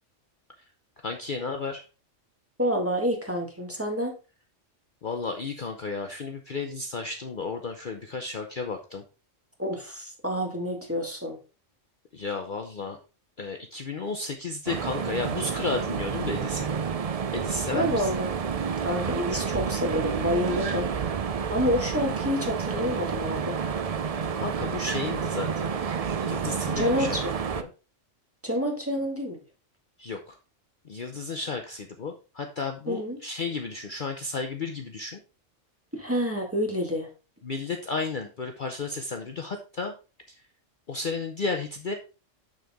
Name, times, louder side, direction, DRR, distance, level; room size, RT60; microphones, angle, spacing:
voice 1, 1.0-1.8 5.0-9.0 12.1-13.0 13.4-16.7 17.3-18.1 24.4-25.8 26.2-27.2 27.6-27.7 30.0-30.4 30.9-35.2 37.4-39.9 40.9-41.9, left 4 dB, 45° left, 4 dB, 0.8 m, -33 dB
voice 2, 2.6-4.2 9.6-11.4 17.7-18.3 18.8-20.9 21.5-23.6 26.7-27.3 28.4-29.4 32.9-33.2 35.9-37.1, equal, 10° right, 1 dB, 1.6 m, -28 dB
sound 1, 14.7-27.6, right 6 dB, 50° right, 0.4 m, -30 dB
6.6 x 6.6 x 3.5 m, 0.32 s
omnidirectional pair, 1.3 m